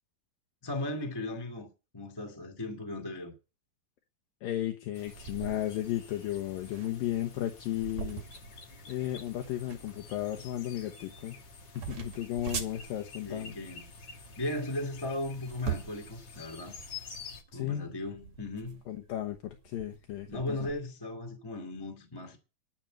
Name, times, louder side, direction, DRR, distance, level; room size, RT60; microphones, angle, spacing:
voice 1, 0.6-3.3 13.2-13.9 14.4-16.8 17.5-18.8 20.3-22.4, left 1 dB, 10° left, 1.7 m, -37 dB
voice 2, 4.4-8.2 8.9-11.4 11.7-13.5 17.5-17.9 18.9-20.6, left 12 dB, 75° left, 2.8 m, -34 dB
sound 1, 4.9-17.4, left 4 dB, 45° left, 1.5 m, -49 dB
sound 2, 5.1-20.8, right 8 dB, 55° right, 3.3 m, -44 dB
11.5 x 7.9 x 7.6 m
omnidirectional pair, 4.2 m